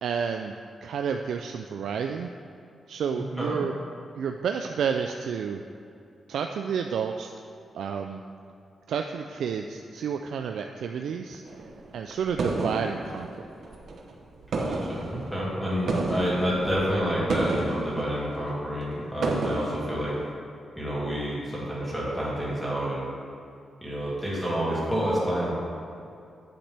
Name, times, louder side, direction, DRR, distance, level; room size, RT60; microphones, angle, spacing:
voice 1, 0.0-0.5 0.8-2.3 2.9-3.7 4.1-5.6 6.3-7.3 7.7-8.2 8.9-11.4 11.9-13.3, right 7 dB, 80° right, 4 dB, 0.3 m, -30 dB
voice 2, 3.2-3.6 14.6-20.2 20.8-23.1 23.8-25.5, equal, ahead, -7 dB, 2.1 m, -29 dB
sound 1, 11.5-14.1 14.4-20.3, right 2 dB, 55° right, 0.8 m, -32 dB
8.7 x 8.0 x 3.4 m, 2.6 s
wide cardioid pair, 180°, 0 cm